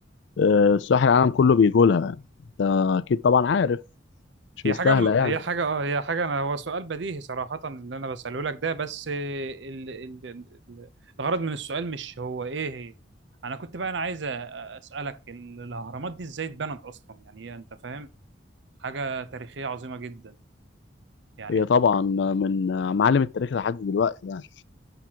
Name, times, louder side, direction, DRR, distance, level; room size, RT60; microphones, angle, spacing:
voice 1, 0.4-2.2 2.6-3.8 4.6-5.3 21.5-24.4, left 5 dB, 70° left, 0.4 m, -21 dB
voice 2, 4.6-10.9 11.2-12.9 13.4-18.1 18.8-20.4 21.4-21.6, right 4 dB, 70° right, 0.7 m, -32 dB
8.1 x 5.9 x 2.9 m
head